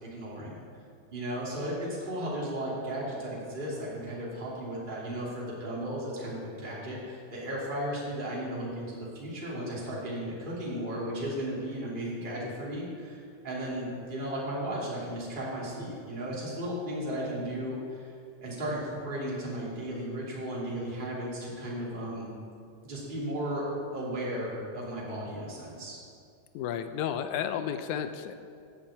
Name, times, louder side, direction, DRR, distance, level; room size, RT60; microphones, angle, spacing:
voice 1, 0.0-0.6 1.1-18.1 18.4-22.3 22.8-23.6 23.9-26.0, equal, 15° right, -6 dB, 2.8 m, -35 dB
voice 2, 26.5-28.3, left 9 dB, 85° left, 9 dB, 2.1 m, -32 dB
10.0 x 7.7 x 8.5 m, 2.3 s
omnidirectional pair, 3.3 m